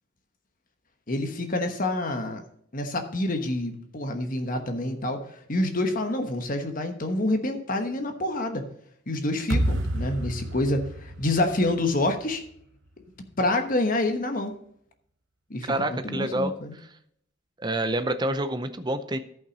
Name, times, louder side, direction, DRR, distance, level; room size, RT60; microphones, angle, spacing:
voice 1, 1.1-2.4 2.7-5.2 5.5-8.6 9.1-12.4 13.4-14.6 15.5-16.7, left 1 dB, 40° left, 6 dB, 1.1 m, -27 dB
sound 1, 9.5-12.6, right 1 dB, 65° right, 0.9 m, -30 dB
voice 2, 15.7-16.5 17.6-19.2, right 1 dB, 20° right, 10 dB, 0.6 m, -27 dB
13.5 x 5.8 x 4.1 m, 0.70 s
head